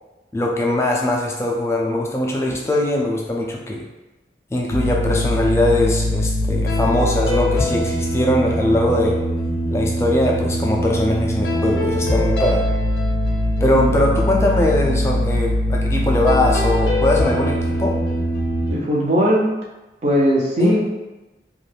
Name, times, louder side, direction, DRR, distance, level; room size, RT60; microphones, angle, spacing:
voice 1, 0.3-3.8 4.5-9.2 9.7-12.7 13.6-18.0 20.6-20.8, left 1 dB, 15° left, -1 dB, 0.3 m, -21 dB
sound 1, 4.7-18.7, left 1 dB, 70° left, 0.5 m, -21 dB
voice 2, 18.7-19.5 20.0-20.8, equal, 40° right, -3 dB, 0.5 m, -18 dB
2.4 x 2.3 x 3.3 m, 1.1 s
head